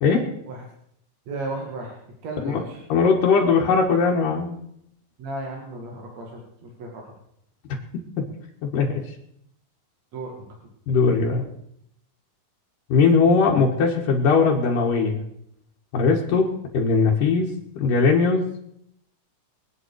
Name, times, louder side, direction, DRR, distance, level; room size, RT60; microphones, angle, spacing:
voice 1, 1.3-1.9 2.2-2.8 5.2-7.1 10.1-10.4, right 2 dB, 55° right, -1 dB, 3.2 m, -34 dB
voice 2, 2.9-4.6 7.9-8.2 8.6-9.0 10.9-11.4 12.9-15.2 15.9-18.5, left 5 dB, 75° left, -2 dB, 3.4 m, -20 dB
25.0 x 9.2 x 4.8 m, 0.73 s
omnidirectional pair, 3.9 m